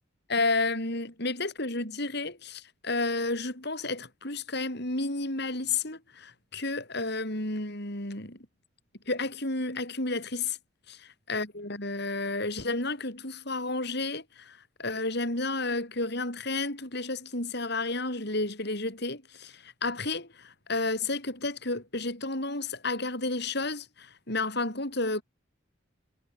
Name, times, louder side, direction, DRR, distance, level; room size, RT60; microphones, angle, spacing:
voice 1, 0.3-8.4 9.1-10.6 10.9-11.0 11.3-25.2, left 2 dB, 55° left, 6.1 m, -31 dB
head